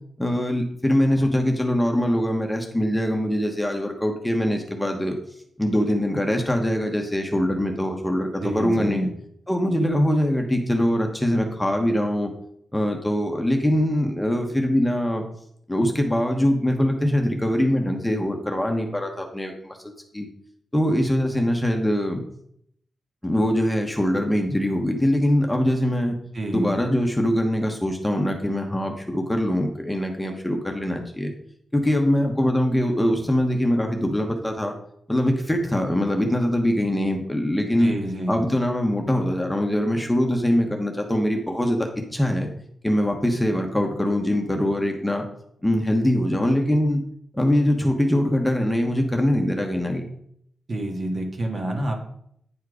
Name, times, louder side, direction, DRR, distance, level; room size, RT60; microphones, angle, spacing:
voice 1, 0.2-5.2 5.6-9.1 9.5-12.3 12.7-15.2 15.7-20.3 20.7-22.2 23.2-26.1 26.5-31.3 31.7-34.7 35.1-37.9 38.3-42.5 42.8-45.2 45.6-47.0 47.3-50.1, equal, 10° left, 2 dB, 1.1 m, -23 dB
voice 2, 8.4-9.1 26.3-26.8 37.8-38.4 50.7-52.0, right 1 dB, 45° right, 2 dB, 1.8 m, -28 dB
9.5 x 4.4 x 4.9 m, 0.70 s
cardioid pair, 95°, 0 cm